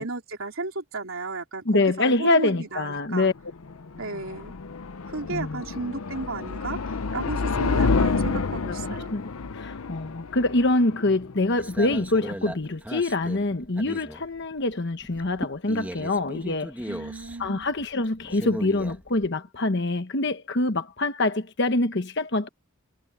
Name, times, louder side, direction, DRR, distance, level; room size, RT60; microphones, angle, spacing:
voice 1, 0.0-3.3 4.0-4.5 5.1-9.1 16.9-17.7, right 3 dB, 70° right, 3.5 m, -34 dB
voice 2, 1.6-3.3 5.3-5.6 8.6-17.0 17.4-22.5, left 2 dB, 55° left, 1.1 m, -25 dB
sound 1, 3.3-12.3, left 4 dB, 85° left, 0.7 m, -29 dB
sound 2, 11.4-14.7 15.0-19.3, equal, 10° right, 1.5 m, -37 dB
head